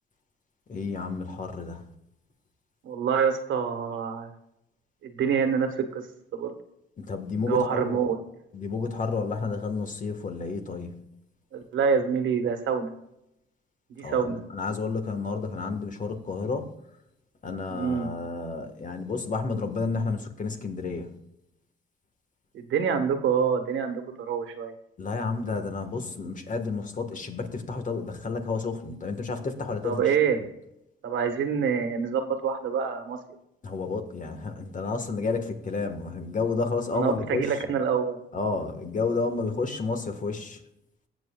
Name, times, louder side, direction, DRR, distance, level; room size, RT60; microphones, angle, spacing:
voice 1, 0.7-1.8 7.0-8.0 8.5-11.0 14.0-16.7 17.4-21.1 25.0-30.1 33.6-37.5 38.3-40.6, left 4 dB, 40° left, 6 dB, 1.6 m, -31 dB
voice 2, 2.8-4.3 5.0-6.1 6.3-6.5 7.5-8.2 11.5-12.9 14.0-14.4 17.7-18.1 22.6-24.7 29.8-30.4 31.0-33.2 36.9-38.2, right 6 dB, 75° right, 6 dB, 1.5 m, -26 dB
19.5 x 7.4 x 2.4 m, 0.84 s
cardioid pair, 90°, 20 cm